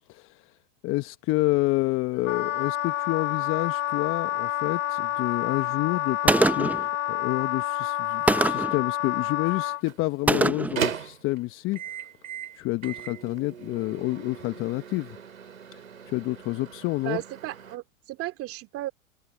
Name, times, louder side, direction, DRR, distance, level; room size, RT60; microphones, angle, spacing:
voice 1, 0.1-0.5 0.8-11.8 12.5-15.2 15.7-17.2, left 21 dB, 30° left, 1.0 m, -29 dB
Wind instrument woodwind instrument, 2.2-9.8, left 12 dB, 80° left, 1.0 m, -28 dB
Gunshot gunfire, 6.3-6.9 8.3-8.8 10.3-10.8, right 2 dB, 5° right, 0.7 m, -23 dB
Microwave oven, 9.6-17.8, right 8 dB, 85° right, 4.0 m, -38 dB
voice 2, 17.0-18.9, right 17 dB, 35° right, 2.8 m, -34 dB
hypercardioid pair, 115°, 39 cm